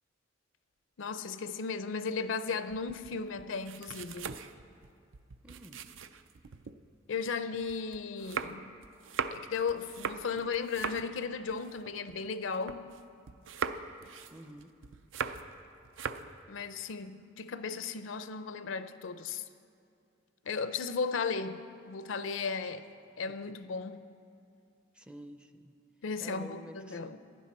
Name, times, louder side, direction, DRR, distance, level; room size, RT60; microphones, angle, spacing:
voice 1, 1.0-4.3 7.1-8.7 9.3-12.9 16.5-19.4 20.5-22.8 23.2-24.0 26.0-27.2, left 5 dB, 70° left, 11 dB, 0.5 m, -35 dB
sound 1, 2.7-6.8 7.2-13.0 13.3-15.6 15.9-16.4, right 6 dB, 70° right, 0.5 m, -40 dB
voice 2, 5.4-5.8 14.3-14.7 22.6-22.7 24.9-25.7 26.2-27.2, right 1 dB, 5° right, 8 dB, 0.5 m, -49 dB
15.5 x 10.5 x 4.2 m, 2.5 s
head